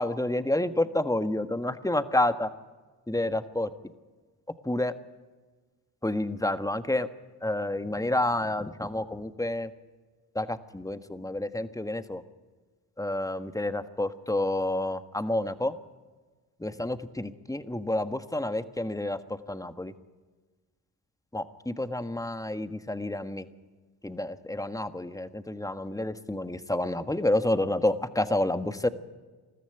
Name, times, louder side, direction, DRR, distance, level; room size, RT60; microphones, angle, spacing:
voice 1, 0.0-2.5 3.1-3.7 4.6-4.9 6.0-7.1 7.4-9.7 10.3-12.2 13.0-15.7 16.6-19.2 19.5-19.9 21.3-23.4 24.0-28.9, left 1 dB, 10° left, 10 dB, 1.5 m, -29 dB
21.0 x 14.0 x 9.1 m, 1.3 s
supercardioid pair, 50°, 42 cm